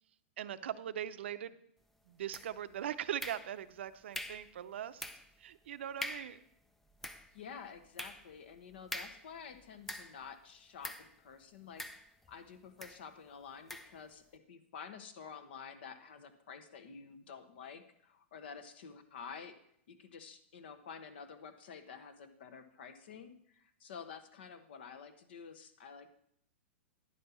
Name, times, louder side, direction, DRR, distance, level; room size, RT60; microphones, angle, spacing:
voice 1, 0.4-1.5 2.1-5.0 5.4-6.4, right 10 dB, 65° right, 14 dB, 0.6 m, -40 dB
sound 1, 2.3-2.7 3.2-3.8 4.1-4.5 5.0-5.4 5.7-5.8 6.0-6.4 6.8-10.3 10.8-11.2 11.8-12.4 12.8-13.0 13.7-14.0, left 1 dB, 5° left, 0.3 m, -44 dB
voice 2, 7.3-11.8 12.3-19.5 19.9-26.1, left 6 dB, 55° left, 9 dB, 1.1 m, -50 dB
10.0 x 5.4 x 6.9 m, 0.72 s
supercardioid pair, 175°, 7 cm